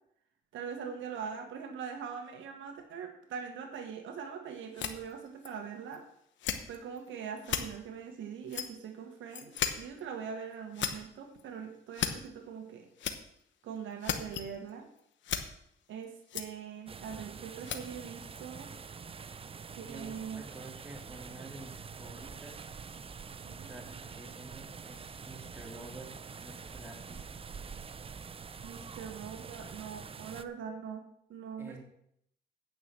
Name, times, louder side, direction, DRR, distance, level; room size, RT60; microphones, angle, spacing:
voice 1, 0.5-6.0 6.7-12.9 13.6-14.9 15.9-18.7 19.8-20.4 23.4-23.7 28.6-31.0 31.3-31.8, right 7 dB, 75° right, 5 dB, 1.4 m, -42 dB
sound 1, 4.7-5.5 5.9-6.0 6.4-7.1 7.4-7.6 8.5-8.8 9.3-9.7 10.0-10.1 10.5-10.9 11.4-11.5 11.9-12.3 13.0-13.1 13.8-14.4 14.7-14.8 15.0-15.4 16.3-16.4 17.6-17.8 18.3-18.4, left 9 dB, 70° left, 1.0 m, -34 dB
sound 2, 16.9-30.5, right 5 dB, 30° right, 0.6 m, -46 dB
voice 2, 19.7-22.7 23.7-27.4 31.6-31.8, right 2 dB, 10° right, 0 dB, 2.9 m, -50 dB
9.3 x 5.8 x 7.4 m, 0.72 s
cardioid pair, 90°, 20 cm